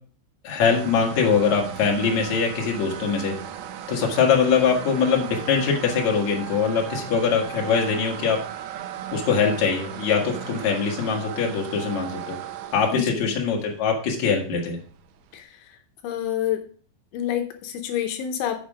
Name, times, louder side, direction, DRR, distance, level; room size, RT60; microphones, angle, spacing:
voice 1, 0.4-3.3 3.9-8.4 9.1-12.4 12.7-14.8, left 6 dB, 50° left, 0 dB, 2.4 m, -22 dB
sound 1, 0.6-15.4, right 9 dB, 80° right, 3.1 m, -37 dB
voice 2, 12.9-13.4 15.3-16.6 17.1-18.6, left 10 dB, 80° left, 5 dB, 3.1 m, -28 dB
7.2 x 7.1 x 4.9 m, 0.43 s
omnidirectional pair, 5.5 m